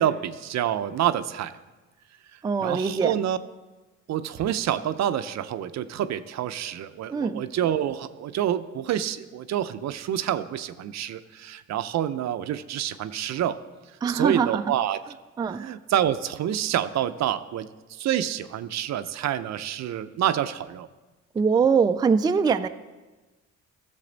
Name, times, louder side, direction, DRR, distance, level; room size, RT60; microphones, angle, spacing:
voice 1, 0.0-1.5 2.3-3.4 4.1-13.6 13.9-15.0 15.5-20.9, right 11 dB, 65° right, 12 dB, 0.5 m, -28 dB
voice 2, 2.4-3.1 7.1-7.4 14.0-14.6 15.4-15.6 21.4-22.7, right 5 dB, 15° right, 9 dB, 0.3 m, -22 dB
13.5 x 6.8 x 4.0 m, 1.2 s
cardioid pair, 90°, 30 cm